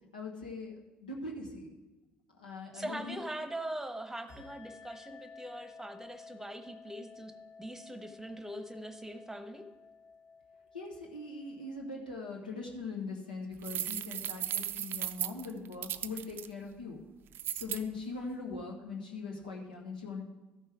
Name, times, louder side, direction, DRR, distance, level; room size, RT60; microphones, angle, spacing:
voice 1, 0.1-0.7 1.0-1.8 2.4-3.2 10.7-17.0 17.5-20.2, left 3 dB, 90° left, 0 dB, 1.2 m, -41 dB
voice 2, 2.7-7.3 7.6-9.7, right 1 dB, 10° right, 8 dB, 1.0 m, -42 dB
sound 1, 4.3-12.4, left 4 dB, 65° left, 3.6 m, -54 dB
sound 2, 13.6-16.5 17.3-17.8, right 10 dB, 50° right, 0.4 m, -36 dB
12.5 x 5.5 x 4.8 m, 1.1 s
hypercardioid pair, 55°, 5 cm